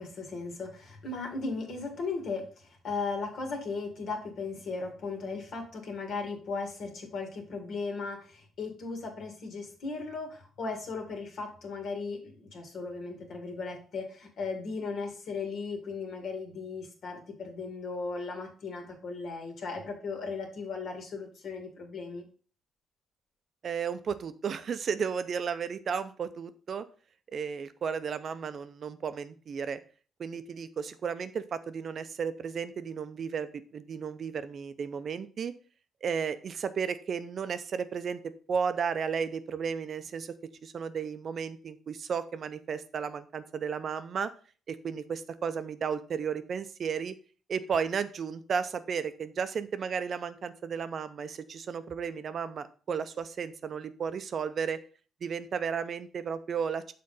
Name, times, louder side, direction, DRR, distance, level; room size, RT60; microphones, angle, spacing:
voice 1, 0.0-22.3, left 4 dB, 65° left, 3 dB, 1.9 m, -37 dB
voice 2, 23.6-26.8 27.3-29.8 30.2-35.5 36.0-40.3 40.6-44.3 44.7-47.1 47.5-54.8 55.2-56.9, right 6 dB, 55° right, 12 dB, 0.6 m, -34 dB
6.6 x 3.7 x 5.5 m, 0.40 s
cardioid pair, 90°, 0 cm